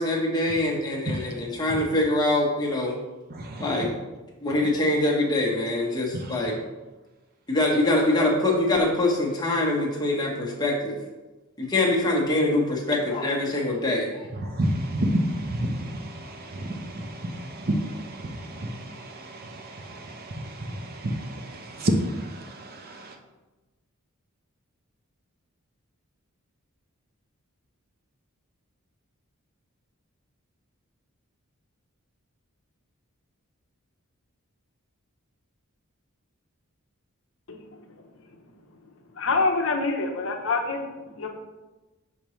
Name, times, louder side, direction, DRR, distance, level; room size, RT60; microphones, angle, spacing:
voice 1, 0.0-3.0 3.6-3.9 4.4-6.5 7.5-11.0 11.6-14.3, left 2 dB, 20° left, -2 dB, 1.1 m, -24 dB
voice 2, 3.3-3.6 14.4-23.2, right 1 dB, 45° right, 3 dB, 0.7 m, -30 dB
voice 3, 39.1-41.3, left 3 dB, 65° left, 3 dB, 0.7 m, -26 dB
5.9 x 5.2 x 3.1 m, 1.1 s
head